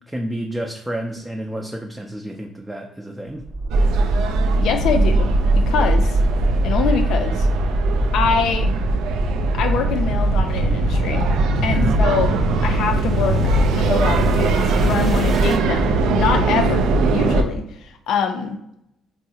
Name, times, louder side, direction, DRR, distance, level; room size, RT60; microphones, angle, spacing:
voice 1, 0.1-3.4 11.7-12.0, right 1 dB, 5° right, 1 dB, 0.4 m, -30 dB
sound 1, 3.4-15.6, right 2 dB, 50° right, 0.8 m, -28 dB
sound 2, 3.7-17.4, right 2 dB, 85° right, 0.3 m, -19 dB
voice 2, 4.6-5.3 5.7-6.2 6.6-7.5 8.1-8.7 9.5-11.2 11.6-12.3 12.6-16.8 17.1-17.6 18.1-18.6, left 6 dB, 75° left, 7 dB, 0.4 m, -24 dB
3.6 x 2.0 x 2.7 m, 0.79 s
cardioid pair, 90°, 0 cm